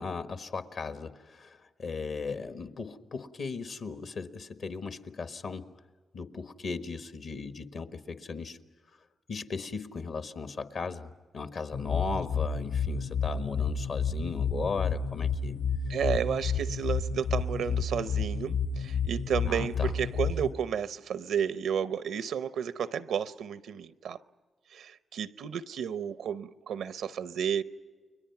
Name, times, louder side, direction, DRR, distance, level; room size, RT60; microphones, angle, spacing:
voice 1, 0.0-5.7 6.1-8.6 9.3-15.6 19.4-19.9, left 4 dB, 65° left, 1.4 m, -37 dB
sound 1, 11.7-20.5, left 5 dB, 85° left, 5.3 m, -30 dB
voice 2, 15.9-24.2 24.7-27.6, right 8 dB, 80° right, 0.7 m, -32 dB
30.0 x 22.5 x 5.9 m
cardioid pair, 65°, 0 cm